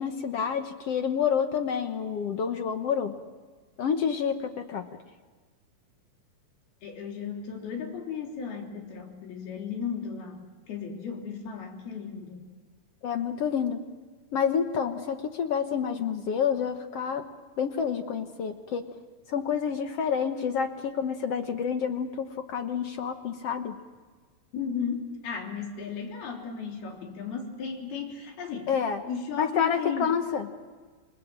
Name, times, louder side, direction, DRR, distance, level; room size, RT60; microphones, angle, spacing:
voice 1, 0.0-3.1 3.8-4.9 13.0-13.8 14.3-17.2 17.6-18.8 19.3-23.7 28.7-29.0 29.4-30.5, left 7 dB, 65° left, 7 dB, 1.6 m, -28 dB
voice 2, 6.8-12.4 24.5-28.7 29.1-30.1, left 6 dB, 85° left, 2 dB, 5.1 m, -35 dB
28.0 x 21.5 x 7.6 m, 1.4 s
omnidirectional pair, 4.3 m